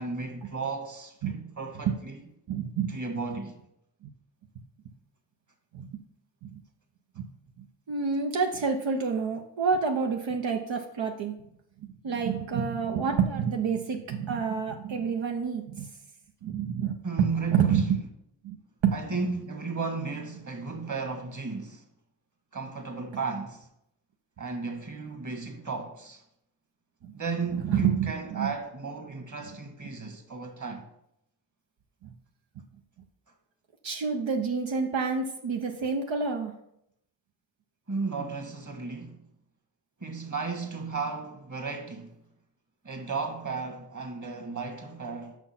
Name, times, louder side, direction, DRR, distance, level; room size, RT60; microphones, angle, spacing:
voice 1, 0.0-2.2 2.9-3.6 17.0-18.0 18.9-21.8 22.5-23.7 24.4-26.2 27.1-30.9 37.9-39.3 40.0-42.1 42.8-45.4, right 4 dB, 40° right, 1.7 m, -34 dB
voice 2, 2.5-2.9 4.0-4.1 5.7-6.0 6.4-6.6 7.2-7.3 7.6-11.3 11.8-15.9 16.4-18.0 18.4-18.6 18.8-19.2 27.0-27.2 27.6-28.5 32.0-32.1 33.8-36.5, right 6 dB, 85° right, 0.8 m, -28 dB
6.2 x 5.8 x 5.8 m
cardioid pair, 45°, 44 cm